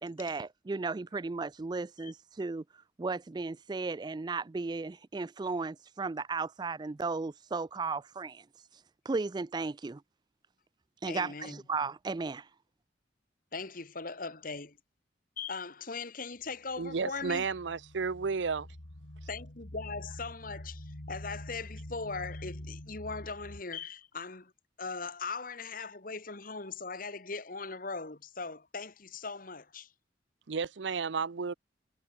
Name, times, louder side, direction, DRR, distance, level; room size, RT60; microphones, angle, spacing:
voice 1, 0.0-2.6 3.0-8.4 8.7-8.8 9.1-10.0 11.0-12.5, right 4 dB, 25° right, 0.3 m, -35 dB
voice 2, 11.1-11.6 13.5-14.8 15.4-17.5 19.3-24.5 24.8-29.9, left 4 dB, 50° left, 1.9 m, -40 dB
sound 1, 16.7-23.6, left 1 dB, 85° left, 2.5 m, -46 dB
voice 3, 16.8-18.7 30.5-31.5, right 5 dB, 75° right, 0.6 m, -32 dB
head